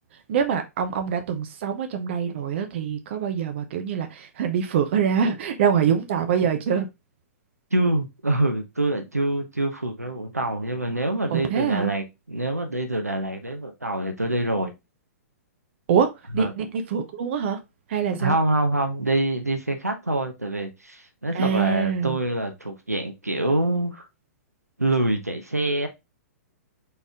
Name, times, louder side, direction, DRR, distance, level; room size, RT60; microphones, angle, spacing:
voice 1, 0.3-6.9 11.3-11.9 15.9-16.1 16.3-17.6 17.9-18.4 21.3-22.2, right 7 dB, 50° right, 0.8 m, -24 dB
voice 2, 7.7-14.7 16.3-16.5 18.2-24.0 24.8-25.9, right 1 dB, 85° right, 0.9 m, -25 dB
4.2 x 3.5 x 3.5 m
figure-of-eight pair, 110°, 8 cm